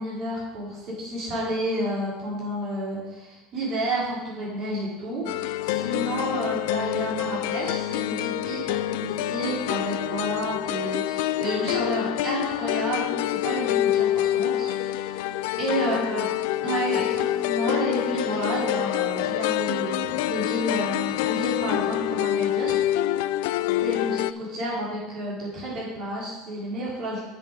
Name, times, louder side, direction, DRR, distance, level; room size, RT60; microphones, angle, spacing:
voice 1, 0.0-15.2 15.6-16.2 16.6-22.8 23.8-27.2, right 1 dB, 40° right, -7 dB, 3.5 m, -30 dB
sound 1, 5.3-24.3, left 14 dB, 75° left, 0.3 m, -26 dB
7.7 x 7.4 x 5.1 m, 1.0 s
cardioid pair, 160°, 0 cm